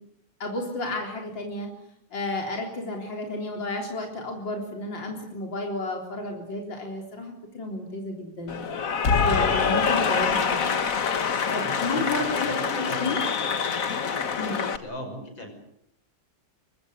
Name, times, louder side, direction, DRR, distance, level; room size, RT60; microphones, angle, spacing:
voice 1, 0.4-1.7 2.1-8.6 9.2-10.8 11.5-13.2 14.4-14.6, left 2 dB, 75° left, 1 dB, 4.5 m, -32 dB
Cheering / Applause, 8.5-14.8, left 6 dB, 50° left, 1.7 m, -25 dB
voice 2, 11.6-13.2 14.8-15.5, equal, 90° left, 5 dB, 6.7 m, -37 dB
24.0 x 23.5 x 8.0 m, 0.74 s
omnidirectional pair, 2.1 m